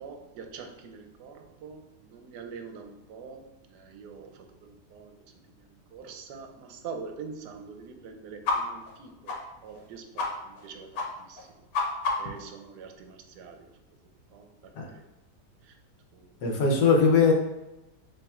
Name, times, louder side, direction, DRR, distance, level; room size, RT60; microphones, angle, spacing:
voice 1, 0.0-5.2 5.6-11.7 12.2-13.7 14.3-15.1 15.6-15.8 16.1-16.4, right 5 dB, 80° right, 5 dB, 1.2 m, -45 dB
sound 1, 8.4-8.6 8.8-9.0 9.3-9.4 9.7-9.8 10.2-10.3 10.5-10.7 10.9-11.1 11.4-12.4, left 4 dB, 90° left, 1.5 m, -29 dB
voice 2, 16.4-17.3, left 5 dB, 75° left, 1 dB, 1.3 m, -20 dB
6.9 x 3.1 x 2.4 m, 0.96 s
omnidirectional pair, 1.8 m